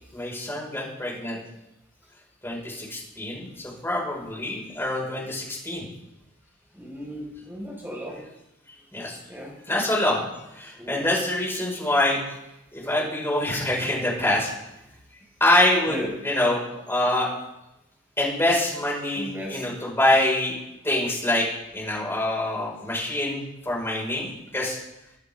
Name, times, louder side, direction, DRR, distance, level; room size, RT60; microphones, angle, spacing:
voice 1, 0.1-1.4 2.4-5.9 8.9-9.2 9.7-10.3 10.5-12.2 12.7-14.5 15.4-16.0 16.2-17.3 18.2-20.6 20.8-21.5 21.7-24.3 24.5-24.8, left 1 dB, 10° left, -4 dB, 5.8 m, -25 dB
voice 2, 6.7-8.2 9.3-9.5 10.8-11.1 15.9-16.1 19.1-19.6, equal, 10° right, -3 dB, 5.8 m, -35 dB
24.0 x 11.5 x 3.8 m, 0.89 s
head